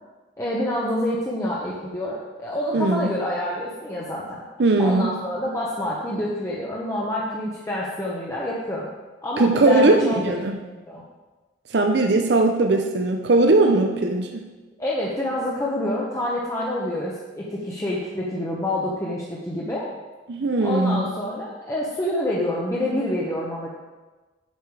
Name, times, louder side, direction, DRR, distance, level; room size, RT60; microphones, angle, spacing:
voice 1, 0.4-4.4 4.8-8.9 9.2-11.0 14.8-19.9 20.6-23.7, left 1 dB, 15° left, -5 dB, 0.9 m, -27 dB
voice 2, 2.7-3.1 4.6-5.2 9.4-10.6 11.7-14.5 20.3-21.1, right 2 dB, 65° right, 3 dB, 0.6 m, -19 dB
8.2 x 6.8 x 4.8 m, 1.2 s
head